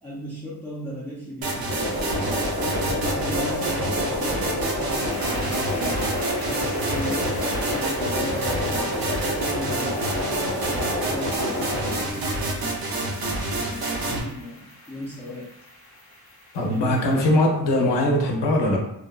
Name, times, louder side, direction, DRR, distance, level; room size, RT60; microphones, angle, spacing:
voice 1, 0.0-6.2 6.5-9.2 9.5-12.9 13.5-15.5 16.6-17.1, left 1 dB, 5° left, -7 dB, 0.4 m, -37 dB
sound 1, 1.4-14.2, right 2 dB, 60° right, 0.6 m, -28 dB
sound 2, 1.7-11.9, left 1 dB, 80° right, 1.0 m, -29 dB
sound 3, 5.1-17.2, left 1 dB, 30° left, 0.8 m, -43 dB
voice 2, 16.5-18.8, left 1 dB, 85° left, 2 dB, 0.6 m, -21 dB
2.6 x 2.1 x 2.3 m, 0.78 s
wide cardioid pair, 105°, 41 cm